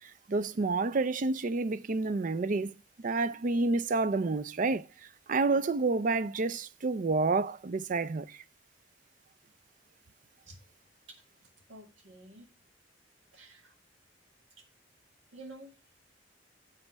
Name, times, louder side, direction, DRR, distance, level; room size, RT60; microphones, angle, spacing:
voice 1, 0.0-2.7 3.0-4.9 5.3-8.4, right 3 dB, 45° right, 0.5 m, -29 dB
voice 2, 11.7-12.5 13.3-13.8 15.3-15.7, right 2 dB, 90° right, 1.9 m, -50 dB
8.1 x 5.7 x 5.1 m
head